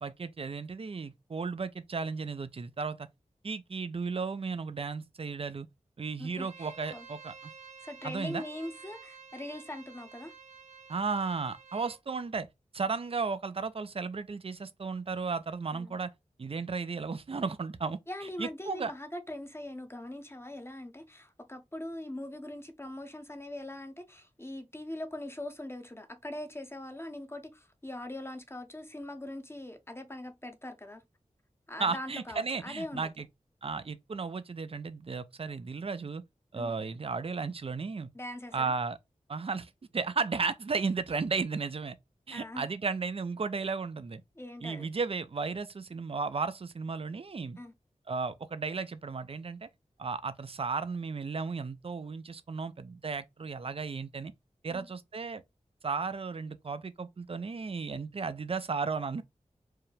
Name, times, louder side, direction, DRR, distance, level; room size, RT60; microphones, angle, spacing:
voice 1, 0.0-3.1 3.4-5.7 6.0-7.5 8.0-8.4 10.9-12.5 12.7-16.1 16.4-18.0 18.4-18.9 31.8-33.3 33.6-36.2 36.5-38.1 38.5-39.0 39.3-42.0 42.3-44.2 44.6-47.6 48.1-49.7 50.0-54.3 54.6-55.4 55.8-59.2, right 4 dB, 50° right, 0.5 m, -34 dB
voice 2, 6.2-7.1 7.8-10.3 15.7-16.0 18.1-31.0 31.7-33.1 36.5-36.7 38.1-38.5 42.3-42.6 44.4-44.9 47.6-47.7 54.7-54.9, left 1 dB, 20° left, 0.8 m, -42 dB
Bowed string instrument, 6.3-12.0, right 6 dB, 70° right, 1.2 m, -51 dB
4.7 x 2.1 x 3.3 m
wide cardioid pair, 65°, 13 cm